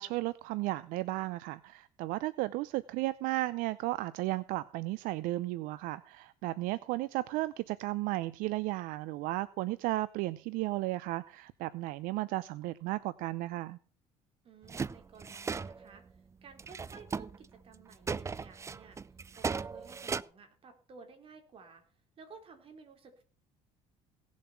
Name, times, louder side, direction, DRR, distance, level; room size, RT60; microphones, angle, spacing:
voice 1, 0.0-13.8, right 18 dB, 75° right, 0.6 m, -34 dB
voice 2, 14.4-16.0 16.4-21.8 22.2-23.2, right 5 dB, 40° right, 4.0 m, -54 dB
sound 1, 14.6-15.9 16.6-17.4 17.7-20.2, right 5 dB, 20° right, 0.5 m, -37 dB
17.5 x 7.3 x 5.7 m
cardioid pair, 115°, 14 cm